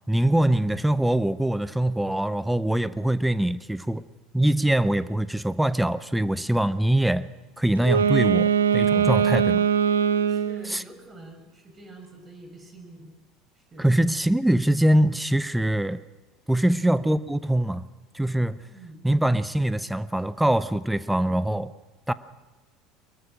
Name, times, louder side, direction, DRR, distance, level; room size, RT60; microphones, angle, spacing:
voice 1, 0.1-4.0 4.3-7.3 7.6-9.6 10.7-10.8 13.8-16.0 16.5-17.9 18.1-18.6 19.0-21.7 22.1-22.2, right 1 dB, 5° right, 0.8 m, -23 dB
Wind instrument woodwind instrument, 7.8-10.7, right 7 dB, 80° right, 0.8 m, -21 dB
voice 2, 8.9-9.4 10.1-13.1 13.7-13.9 16.6-16.9 18.6-19.0, right 2 dB, 25° right, 6.0 m, -46 dB
23.5 x 21.5 x 6.4 m
figure-of-eight pair, 70°, 0 cm